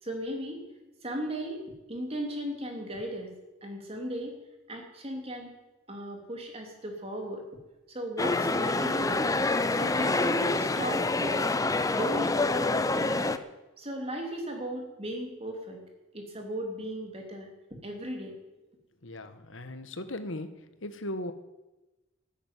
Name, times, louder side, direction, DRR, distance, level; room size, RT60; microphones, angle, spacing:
voice 1, 0.0-0.6 1.0-1.6 1.9-3.3 3.6-4.4 4.7-5.5 5.9-7.4 7.9-9.3 9.7-11.5 11.8-13.4 13.8-15.8 16.1-17.5 17.8-18.3, equal, 30° right, 2 dB, 3.0 m, -36 dB
sound 1, 8.2-13.4, left 2 dB, 15° left, 0.6 m, -27 dB
voice 2, 19.0-21.3, left 1 dB, 75° left, 10 dB, 1.4 m, -38 dB
12.0 x 10.0 x 9.2 m, 1.0 s
head